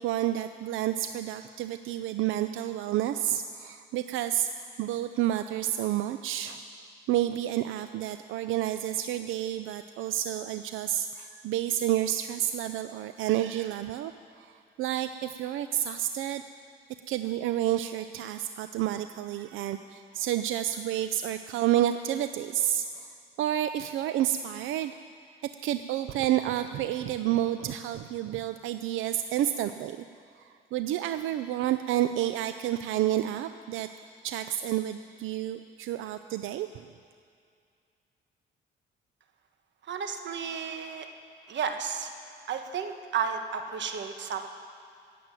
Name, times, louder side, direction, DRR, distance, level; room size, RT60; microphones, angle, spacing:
voice 1, 0.0-6.6 7.1-16.4 17.1-25.0 25.4-30.1 30.4-33.9 34.2-36.9, right 12 dB, 85° right, 10 dB, 0.5 m, -30 dB
voice 2, 39.9-41.1 41.5-42.1 42.5-44.5, right 6 dB, 65° right, 6 dB, 1.3 m, -32 dB
17.0 x 7.7 x 8.9 m, 2.3 s
cardioid pair, 90°, 20 cm